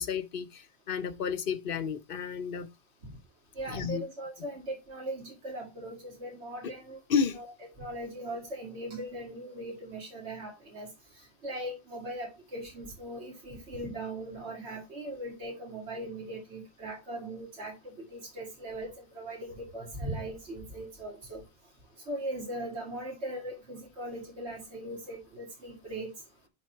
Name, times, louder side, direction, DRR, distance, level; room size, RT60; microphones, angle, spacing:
voice 1, 0.0-2.7 3.7-4.0 7.1-7.4, left 7 dB, 55° left, 1.0 m, -31 dB
voice 2, 3.6-7.0 7.3-7.5 7.8-10.9 11.2-21.4 22.1-26.1, right 1 dB, 75° right, 2.7 m, -39 dB
11.0 x 3.8 x 4.5 m
omnidirectional pair, 1.1 m